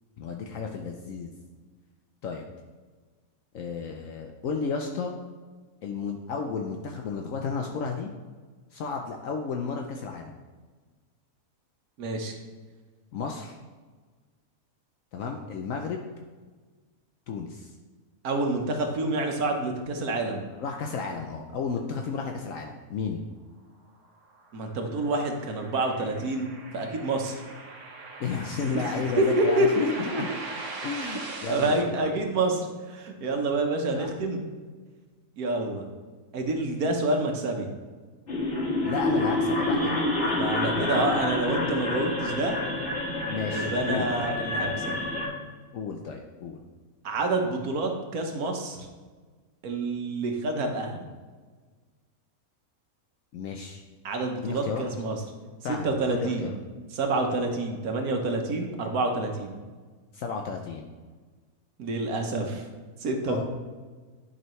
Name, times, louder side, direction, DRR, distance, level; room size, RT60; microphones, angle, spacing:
voice 1, 0.2-1.3 2.2-2.4 3.5-5.1 5.8-8.1 8.7-10.3 13.1-13.6 15.1-16.0 17.3-17.7 20.6-23.2 28.2-30.3 30.8-32.1 33.9-34.1 38.8-40.0 40.6-41.1 43.3-44.1 45.7-46.6 53.3-53.8 54.4-54.8 55.6-56.5 60.1-60.9 63.2-63.4, left 5 dB, 70° left, 3 dB, 1.0 m, -33 dB
voice 2, 12.0-12.3 18.2-20.4 24.5-27.4 28.7-29.7 30.1-30.2 31.0-31.2 31.5-34.4 35.4-35.8 36.3-37.7 40.2-42.6 43.5-44.8 47.0-48.8 49.6-51.0 54.0-55.2 55.8-56.5 56.9-59.5 61.8-62.6 63.0-63.4, right 2 dB, 85° right, 3 dB, 1.5 m, -28 dB
sound 1, 24.0-31.8, right 3 dB, 60° right, 1.3 m, -41 dB
sound 2, 38.3-45.3, left 2 dB, 50° left, 1.9 m, -28 dB
10.5 x 5.5 x 3.1 m, 1.4 s
omnidirectional pair, 1.5 m